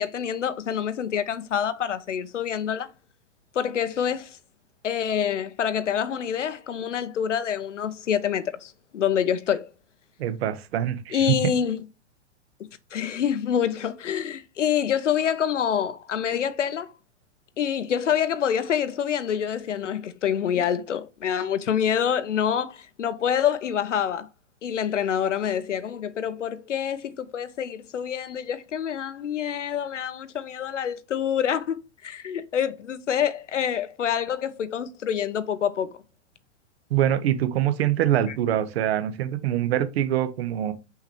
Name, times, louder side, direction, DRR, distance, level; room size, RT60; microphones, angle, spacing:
voice 1, 0.0-2.9 3.5-4.4 4.8-9.7 11.1-11.8 12.9-16.9 17.6-24.3 24.6-35.9 38.3-38.4, left 8 dB, 85° left, 0.6 m, -26 dB
voice 2, 10.2-11.5 36.9-40.7, right 11 dB, 60° right, 0.7 m, -24 dB
5.8 x 2.8 x 2.9 m
hypercardioid pair, 110°, 36 cm